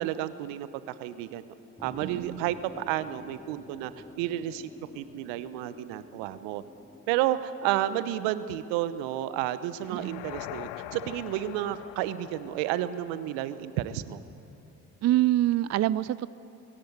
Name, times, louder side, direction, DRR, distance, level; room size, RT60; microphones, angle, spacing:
voice 1, 0.0-1.4 1.8-3.9 4.2-4.7 4.9-6.6 7.1-14.2, right 13 dB, 70° right, 14 dB, 1.0 m, -31 dB
sound 1, 1.8-8.1, left 1 dB, 5° left, 1.5 m, -49 dB
voice 2, 2.0-2.4 9.9-10.2 15.0-16.3, right 14 dB, 35° right, 19 dB, 0.4 m, -26 dB
sound 2, 9.8-13.9, left 14 dB, 60° left, 0.8 m, -43 dB
21.0 x 17.0 x 8.0 m, 2.8 s
hypercardioid pair, 50°, 46 cm